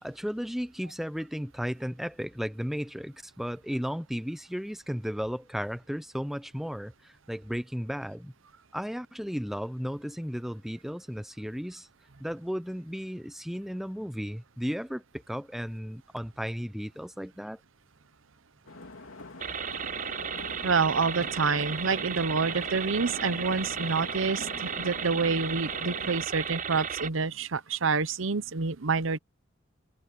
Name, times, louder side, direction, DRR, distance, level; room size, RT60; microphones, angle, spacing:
voice 1, 0.0-8.3 8.7-11.9 12.2-17.6, equal, ahead, 0.8 m, -34 dB
sound 1, 18.7-26.2, left 2 dB, 85° left, 3.2 m, -43 dB
sound 2, 19.4-27.1, right 7 dB, 40° right, 0.7 m, -34 dB
voice 2, 20.6-29.2, right 4 dB, 75° right, 0.8 m, -28 dB
head